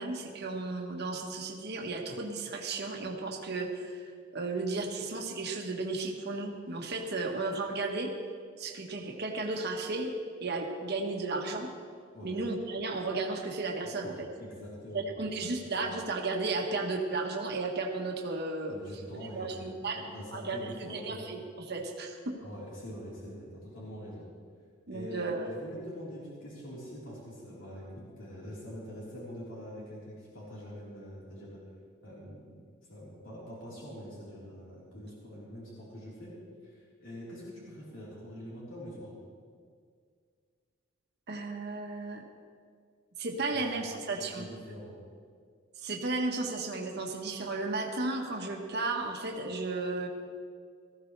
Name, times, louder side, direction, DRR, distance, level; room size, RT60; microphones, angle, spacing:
voice 1, 0.0-8.1 8.6-10.1 10.4-11.7 12.2-14.3 14.9-18.8 19.2-20.0 20.3-22.3 24.9-25.5 41.3-42.2 43.2-44.4 45.8-50.1, right 3 dB, 55° right, 1 dB, 1.5 m, -34 dB
voice 2, 14.4-15.9 18.6-21.3 22.4-24.2 24.9-31.6 32.0-32.6 32.9-36.4 36.6-39.1 43.5-44.9, equal, 75° left, -8 dB, 4.1 m, -45 dB
19.0 x 14.5 x 3.4 m, 2.1 s
head